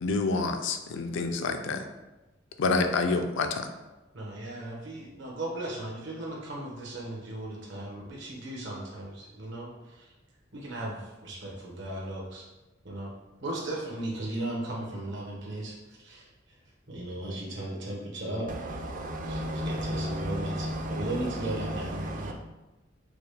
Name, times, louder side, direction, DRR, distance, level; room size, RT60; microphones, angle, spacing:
voice 1, 0.0-1.9 2.6-3.7, left 3 dB, 70° left, 6 dB, 0.4 m, -28 dB
voice 2, 4.1-10.1 10.5-12.5 12.8-13.1 13.4-16.3 16.9-18.5 19.3-22.3, right 1 dB, 65° right, -2 dB, 1.1 m, -36 dB
voice 3, 18.5-22.3, equal, 45° right, 3 dB, 0.5 m, -34 dB
4.8 x 2.2 x 3.3 m, 1.1 s
head